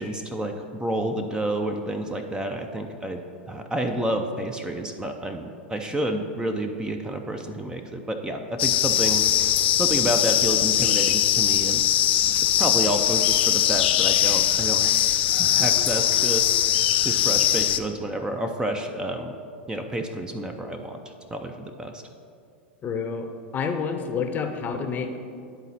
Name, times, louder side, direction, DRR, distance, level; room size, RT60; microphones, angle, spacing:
voice 1, 0.0-9.2 9.7-11.9 12.4-16.4 17.0-19.4 19.7-21.0 21.3-22.0, right 1 dB, 15° right, 5 dB, 0.5 m, -29 dB
sound 1, 8.6-17.8, left 12 dB, 70° left, 0.4 m, -21 dB
voice 2, 22.8-23.3 23.5-25.2, left 5 dB, 30° left, 6 dB, 0.7 m, -28 dB
9.8 x 4.0 x 4.2 m, 2.3 s
hypercardioid pair, 100°, 6 cm